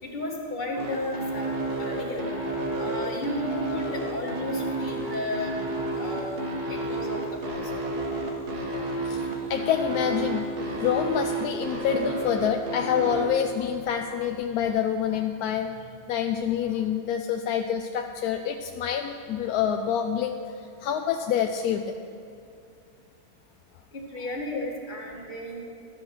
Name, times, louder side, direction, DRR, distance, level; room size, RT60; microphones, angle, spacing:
voice 1, 0.0-1.5 1.8-2.3 2.8-5.5 5.9-7.7 23.9-25.7, left 1 dB, 30° left, -2 dB, 1.8 m, -34 dB
sound 1, 0.8-13.3, right 2 dB, 80° right, 2.0 m, -30 dB
voice 2, 8.7-10.5 10.8-22.0, left 8 dB, 80° left, 5 dB, 1.1 m, -27 dB
13.0 x 7.6 x 6.1 m, 2.6 s
omnidirectional pair, 1.6 m